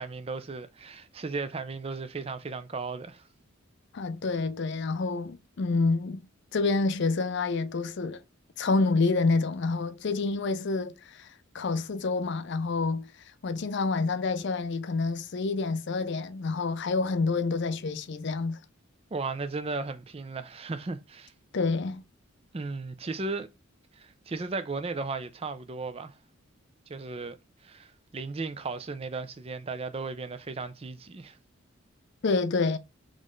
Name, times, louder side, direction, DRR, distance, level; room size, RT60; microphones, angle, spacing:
voice 1, 0.0-3.2 19.1-21.3 22.5-23.5 23.9-26.2 26.9-27.4 27.6-31.4, right 3 dB, 25° right, 0.4 m, -35 dB
voice 2, 3.9-6.3 6.5-8.2 8.6-11.3 11.5-13.1 13.4-18.6 21.5-22.0 32.2-32.8, left 3 dB, 55° left, 0.5 m, -28 dB
4.0 x 3.1 x 3.7 m
head